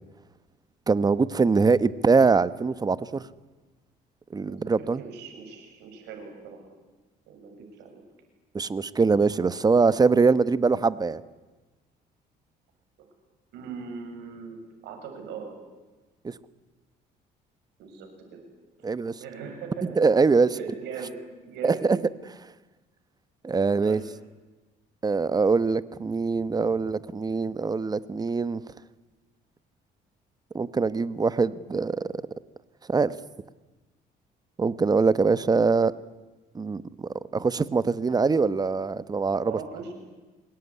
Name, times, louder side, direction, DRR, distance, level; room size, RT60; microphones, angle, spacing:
voice 1, 0.9-3.2 4.3-5.0 8.5-11.2 16.2-16.3 18.8-19.1 20.0-20.5 21.6-22.3 23.4-24.0 25.0-28.6 30.5-32.1 32.9-33.2 34.6-35.9 36.5-39.6, right 4 dB, 25° right, 16 dB, 1.1 m, -23 dB
voice 2, 4.5-6.6 7.3-8.0 13.5-14.6 14.8-15.6 17.8-18.4 19.2-20.0 20.5-21.2 21.4-21.9 23.8-24.0 39.4-39.9, right 6 dB, 85° right, 4 dB, 7.3 m, -40 dB
26.5 x 20.5 x 9.9 m, 1.2 s
cardioid pair, 110°, 17 cm